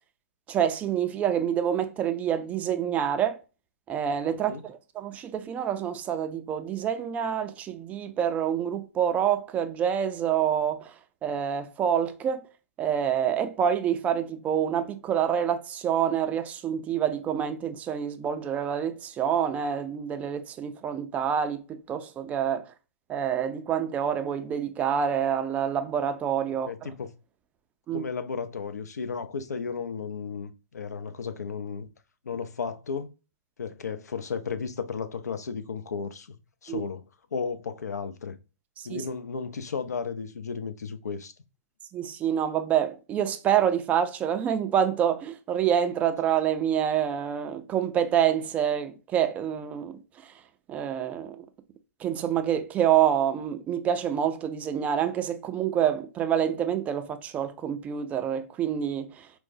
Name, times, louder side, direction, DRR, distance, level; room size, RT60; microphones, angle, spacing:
voice 1, 0.5-3.4 3.9-10.9 11.2-12.4 12.8-22.6 23.1-26.7 27.9-28.1 36.7-36.8 38.8-39.0 41.9-50.3 50.7-51.5 52.0-59.3, right 9 dB, 15° right, 0.3 m, -27 dB
voice 2, 26.7-27.1 27.9-31.9 32.2-33.1 33.6-36.4 36.6-37.0 37.3-38.4 38.8-41.3, left 5 dB, 80° left, 0.5 m, -34 dB
4.6 x 2.0 x 2.4 m
hypercardioid pair, 130°, 9 cm